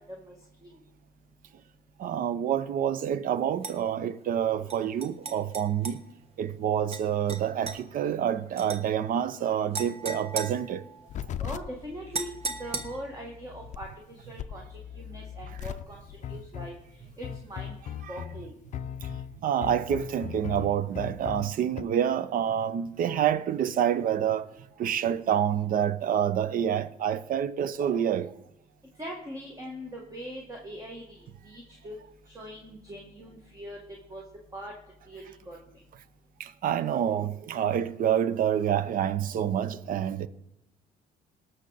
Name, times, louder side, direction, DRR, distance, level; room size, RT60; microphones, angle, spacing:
voice 1, 2.0-6.0 6.4-10.8 19.4-24.5 24.8-28.3 36.4-40.3, right 9 dB, 55° right, 0.6 m, -27 dB
sound 1, 3.6-3.8 4.7-6.0 6.9-7.0 7.3-7.8 8.6-8.8 9.7-11.2 12.1-13.2, right 4 dB, 35° right, 1.2 m, -36 dB
sound 2, 11.1-21.8, left 9 dB, 45° left, 0.5 m, -39 dB
voice 2, 11.4-12.3 12.6-13.9 14.3-16.0 16.3-16.7 17.2-17.8 18.1-18.5 29.0-31.2 31.4-32.0 32.3-33.8 34.1-34.2 34.5-34.7 35.1-35.6, equal, 20° right, 1.6 m, -41 dB
18.5 x 6.4 x 4.0 m
cardioid pair, 110°, 17 cm